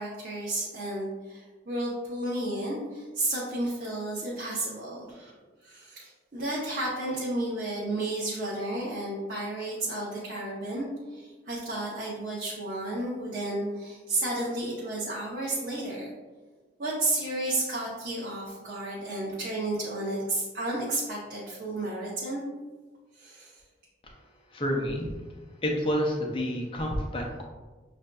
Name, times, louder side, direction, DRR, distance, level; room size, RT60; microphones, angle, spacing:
voice 1, 0.0-5.3 5.6-16.1 16.8-22.4 23.1-23.6, right 1 dB, 50° right, -5 dB, 0.6 m, -32 dB
voice 2, 24.5-25.1 25.6-27.4, equal, 30° left, 0 dB, 0.5 m, -29 dB
6.3 x 2.5 x 2.2 m, 1.3 s
head